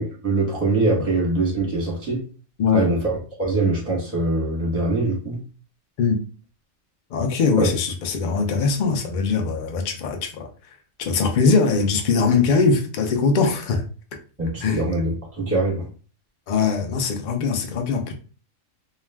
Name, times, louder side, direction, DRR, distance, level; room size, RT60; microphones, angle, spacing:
voice 1, 0.0-2.2 2.7-3.1 3.4-5.4 7.6-7.7 14.4-15.8, right 2 dB, 10° right, 0.9 m, -23 dB
voice 2, 7.1-10.5 11.0-13.8 14.6-14.8 16.5-18.1, left 5 dB, 75° left, 0.4 m, -21 dB
2.3 x 2.3 x 3.3 m
omnidirectional pair, 1.4 m